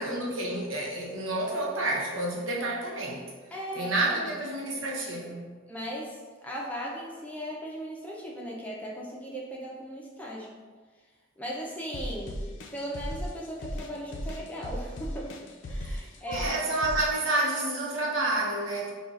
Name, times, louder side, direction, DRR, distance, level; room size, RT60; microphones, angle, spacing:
voice 1, 0.0-3.3 3.7-5.6 15.9-16.0 16.3-18.9, right 2 dB, 90° right, -3 dB, 0.8 m, -29 dB
voice 2, 3.5-4.4 5.7-10.5 11.4-12.4 12.7-15.4 15.7-16.9, equal, 10° left, -4 dB, 0.5 m, -38 dB
sound 1, 11.9-17.3, equal, 65° left, 0.5 m, -36 dB
5.4 x 2.3 x 2.4 m, 1.4 s
head